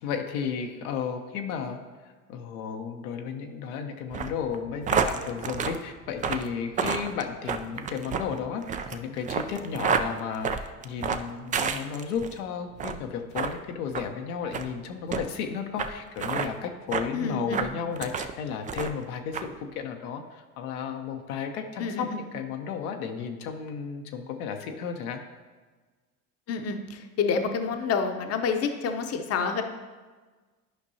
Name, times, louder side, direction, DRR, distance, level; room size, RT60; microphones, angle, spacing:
voice 1, 0.0-1.8 2.3-25.2, left 6 dB, 80° left, 4 dB, 0.9 m, -33 dB
sound 1, 4.1-12.3 12.7-13.0 13.3-13.5 13.9-14.1 14.5-14.7 15.1-15.2 15.8-15.9 16.2-16.5 16.9-17.1 17.5-18.3 18.7-19.0 19.3-19.5, right 6 dB, 20° right, 0.3 m, -29 dB
voice 2, 17.1-17.6 21.8-22.0 26.5-29.6, left 5 dB, 35° left, 6 dB, 0.8 m, -28 dB
11.5 x 5.2 x 2.7 m, 1.4 s
hypercardioid pair, 80°, 43 cm